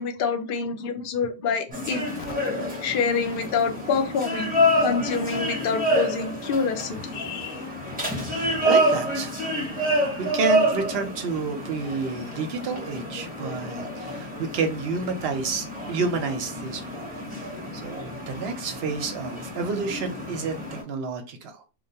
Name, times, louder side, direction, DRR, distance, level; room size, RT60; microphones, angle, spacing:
voice 1, 0.0-2.0 2.8-4.5 4.8-7.6, left 5 dB, 60° left, 0.6 m, -27 dB
sound 1, 1.7-20.8, equal, 10° right, 0.7 m, -28 dB
voice 2, 8.3-9.4 9.9-16.8 17.3-17.5 17.8-21.7, right 4 dB, 65° right, 0.7 m, -30 dB
2.2 x 2.2 x 2.7 m
omnidirectional pair, 1.2 m